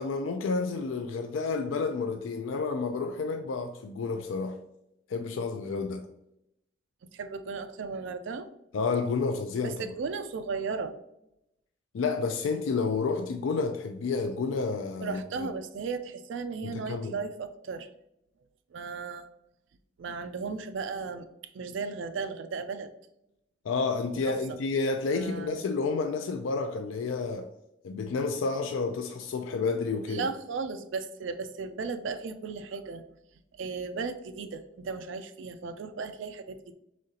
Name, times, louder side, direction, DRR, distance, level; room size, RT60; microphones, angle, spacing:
voice 1, 0.0-4.6 5.1-6.1 8.7-9.9 11.9-15.5 16.6-17.1 23.6-27.5 27.8-30.2, left 4 dB, 85° left, 0.4 m, -30 dB
voice 2, 7.1-8.5 9.6-11.0 15.0-17.9 18.7-19.3 20.0-21.3 21.5-22.9 24.3-24.4 25.1-25.6 30.1-33.0 33.5-36.7, right 4 dB, 70° right, 0.4 m, -35 dB
5.1 x 3.7 x 2.8 m
head